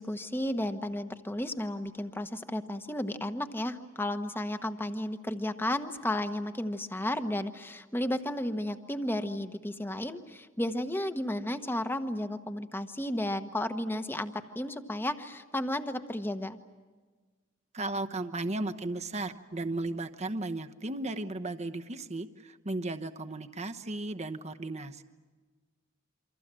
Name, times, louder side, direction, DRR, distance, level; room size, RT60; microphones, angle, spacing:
voice 1, 0.0-16.6, left 1 dB, 10° left, 8 dB, 1.2 m, -33 dB
voice 2, 17.7-25.0, right 2 dB, 35° right, 8 dB, 1.0 m, -35 dB
28.0 x 25.0 x 7.6 m, 1.4 s
head